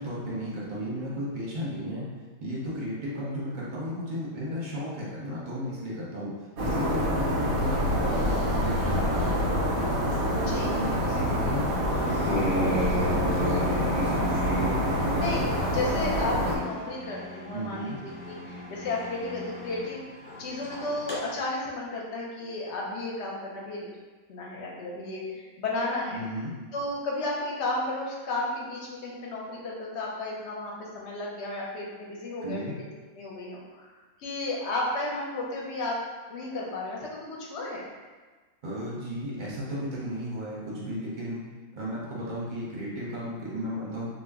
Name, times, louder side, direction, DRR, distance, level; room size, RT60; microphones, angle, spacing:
voice 1, 0.0-2.1 2.4-6.3 6.6-11.7 12.0-15.4 17.5-18.0 26.1-26.5 32.4-32.7 38.6-41.5 41.8-44.1, equal, 50° right, -6 dB, 0.6 m, -34 dB
sound 1, 6.6-16.6, equal, 85° right, 1.0 m, -27 dB
voice 2, 10.5-10.8 15.2-15.4 15.7-17.9 18.2-20.0 20.4-23.9 24.3-26.2 26.7-32.9 33.2-33.9 34.2-36.0 36.3-37.9, left 2 dB, 65° left, -3 dB, 0.8 m, -33 dB
sound 2, 11.8-21.2, left 1 dB, 25° left, 0.8 m, -34 dB
2.4 x 2.0 x 3.4 m, 1.4 s
omnidirectional pair, 1.4 m